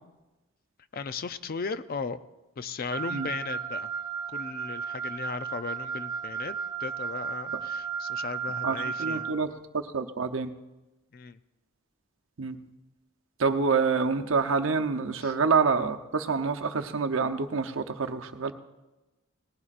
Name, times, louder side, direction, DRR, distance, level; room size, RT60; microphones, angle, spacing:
voice 1, 0.9-2.2 2.6-3.9 4.3-6.5 6.8-9.3 11.1-11.4 15.2-15.3, left 4 dB, 45° left, 13 dB, 0.5 m, -36 dB
Wind instrument woodwind instrument, 2.9-9.4, right 6 dB, 20° right, 0.7 m, -34 dB
voice 2, 8.6-9.5 9.7-10.5 12.4-12.6 13.4-18.5, right 5 dB, 70° right, 6 dB, 0.8 m, -27 dB
19.0 x 15.5 x 2.5 m, 1.1 s
head